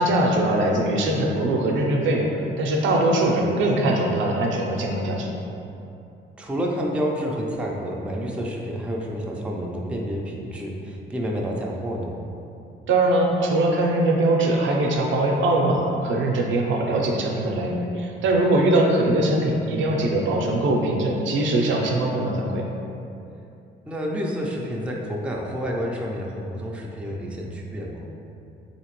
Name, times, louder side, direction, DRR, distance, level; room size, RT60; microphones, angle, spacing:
voice 1, 0.0-5.3 12.9-22.6, right 1 dB, 70° right, 0 dB, 0.5 m, -22 dB
voice 2, 6.4-12.2 23.9-28.1, equal, 5° right, -2 dB, 0.4 m, -29 dB
3.5 x 2.8 x 2.9 m, 2.7 s
cardioid pair, 90°, 20 cm